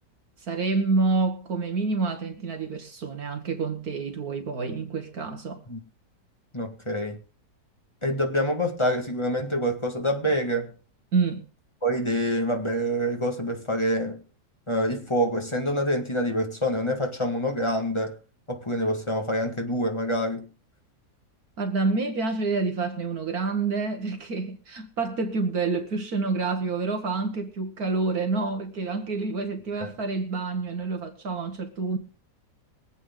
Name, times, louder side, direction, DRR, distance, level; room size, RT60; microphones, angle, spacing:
voice 1, 0.4-5.6 11.1-11.5 21.6-32.0, right 4 dB, 60° right, 1.9 m, -28 dB
voice 2, 6.5-7.2 8.0-10.7 11.8-14.2 14.7-18.2 18.5-20.5 29.8-29.9, equal, 15° left, 1.8 m, -26 dB
23.5 x 8.4 x 3.8 m
omnidirectional pair, 1.8 m